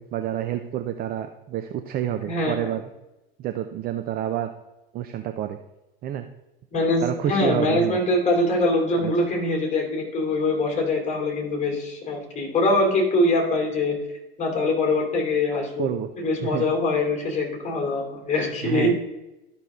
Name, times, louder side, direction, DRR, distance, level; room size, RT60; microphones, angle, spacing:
voice 1, 0.0-2.9 3.4-4.5 4.9-5.6 6.0-6.3 7.0-8.0 8.9-9.1 15.8-16.1 16.4-16.7 18.6-18.9, right 11 dB, 30° right, 7 dB, 0.6 m, -28 dB
voice 2, 2.3-2.7 6.7-14.0 14.4-15.9 16.2-18.9, left 2 dB, 25° left, 0 dB, 3.0 m, -23 dB
12.5 x 5.8 x 3.7 m, 0.98 s
figure-of-eight pair, 80°, 29 cm